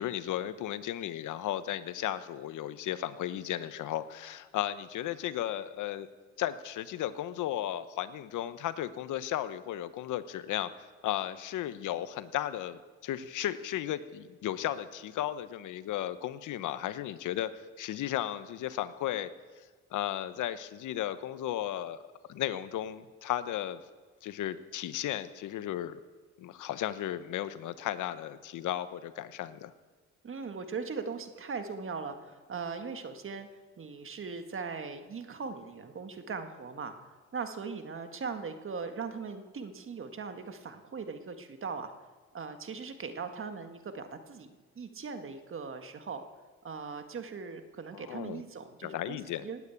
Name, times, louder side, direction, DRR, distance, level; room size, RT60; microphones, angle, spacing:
voice 1, 0.0-6.1 6.4-17.5 17.8-19.3 19.6-22.0 22.3-23.8 24.2-26.0 26.4-29.7 47.9-48.4 48.8-49.5, left 12 dB, 80° left, 13 dB, 1.0 m, -35 dB
voice 2, 30.2-33.5 33.8-36.9 37.3-41.9 42.3-46.2 46.6-49.6, right 5 dB, 45° right, 7 dB, 1.7 m, -39 dB
18.0 x 9.3 x 8.4 m, 1.4 s
cardioid pair, 90°, 30 cm